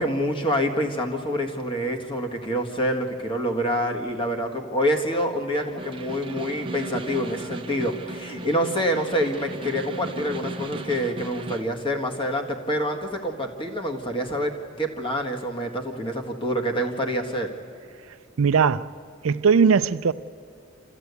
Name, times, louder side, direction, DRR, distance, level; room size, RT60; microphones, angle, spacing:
voice 1, 0.0-17.5, equal, 25° left, 1.7 m, -27 dB
Snare drum, 5.6-11.8, right 2 dB, 25° right, 0.9 m, -36 dB
voice 2, 18.1-18.9 19.2-20.1, right 6 dB, 75° right, 0.5 m, -20 dB
27.5 x 14.0 x 8.3 m
head